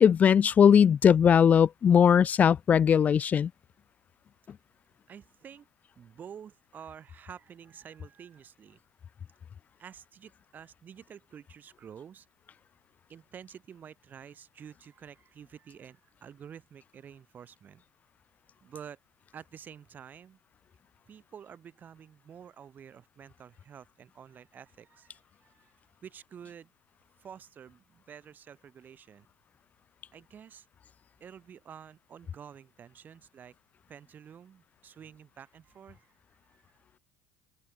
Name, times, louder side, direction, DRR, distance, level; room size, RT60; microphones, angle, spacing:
voice 1, 0.0-3.5, left 8 dB, 30° left, 0.4 m, -20 dB
voice 2, 5.1-5.7 6.0-8.8 9.8-12.3 13.1-17.8 18.6-19.0 19.3-20.4 21.1-26.7 27.2-29.3 30.1-30.7 31.2-33.5 33.9-36.2 36.4-36.7, right 8 dB, 40° right, 5.7 m, -49 dB
supercardioid pair, 95°, 5 cm